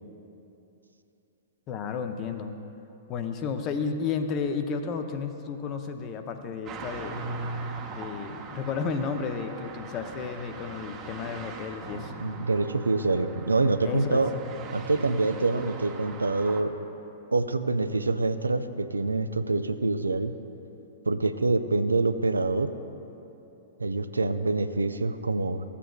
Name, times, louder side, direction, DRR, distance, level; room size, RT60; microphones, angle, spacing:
voice 1, 1.7-2.6 3.1-7.2 7.9-12.1 13.8-14.2, left 5 dB, 35° left, 7 dB, 0.6 m, -32 dB
sound 1, 6.7-16.6, right 3 dB, 30° right, 0.8 m, -40 dB
voice 2, 12.2-14.3 14.7-16.8 17.3-20.3 21.1-22.7 23.8-25.6, right 3 dB, 90° right, 10 dB, 0.3 m, -26 dB
14.5 x 8.3 x 2.3 m, 2.9 s
hypercardioid pair, 110°, 0 cm